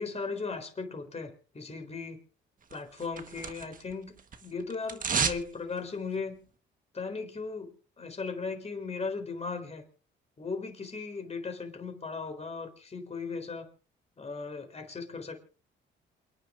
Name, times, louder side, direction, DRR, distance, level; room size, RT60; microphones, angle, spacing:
voice 1, 0.0-2.2 2.7-4.2 4.4-6.4 6.9-7.7 8.0-9.8 10.4-13.7 14.2-15.4, left 4 dB, 35° left, 5 dB, 4.0 m, -37 dB
sound 1, 2.7-3.9 4.2-5.5 5.8-5.9, right 6 dB, 45° right, 1.4 m, -32 dB
28.5 x 9.8 x 2.6 m, 0.38 s
cardioid pair, 90°, 20 cm